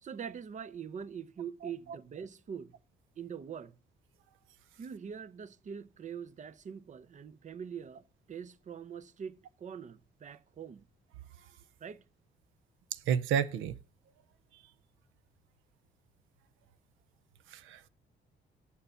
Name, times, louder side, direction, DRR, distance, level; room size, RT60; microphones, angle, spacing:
voice 1, 0.0-2.7 3.2-3.8 4.8-10.8 11.8-12.0, right 7 dB, 40° right, 0.6 m, -43 dB
voice 2, 12.9-13.8 17.5-17.9, right 8 dB, 90° right, 0.5 m, -31 dB
6.9 x 6.6 x 5.5 m
cardioid pair, 90°, 20 cm